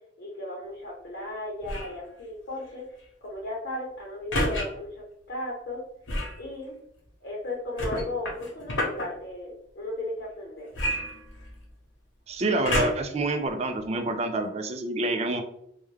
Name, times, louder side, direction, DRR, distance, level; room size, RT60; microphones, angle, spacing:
voice 1, 0.2-2.9 3.2-5.8 6.4-6.7 7.2-10.7, left 1 dB, 60° left, -4 dB, 0.7 m, -36 dB
sound 1, 1.6-2.0 4.3-4.6 6.0-6.4 7.8-9.1 10.7-11.7 12.6-13.2 13.8-13.9, left 1 dB, 85° left, 0.9 m, -29 dB
voice 2, 12.3-15.4, right 2 dB, 35° right, 7 dB, 0.3 m, -27 dB
3.2 x 2.2 x 3.3 m, 0.74 s
head